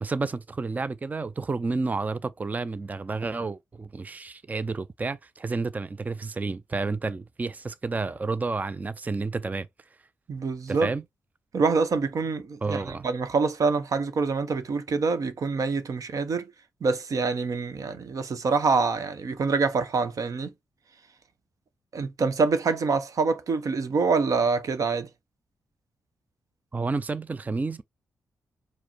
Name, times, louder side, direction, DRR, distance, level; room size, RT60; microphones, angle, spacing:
voice 1, 0.0-9.7 10.7-11.0 12.6-13.0 26.7-27.8, right 3 dB, 25° right, 0.4 m, -30 dB
voice 2, 10.3-10.9 11.5-16.5 16.8-20.5 21.9-25.1, right 4 dB, 60° right, 0.9 m, -26 dB
4.8 x 2.1 x 4.4 m
cardioid pair, 85°, 7 cm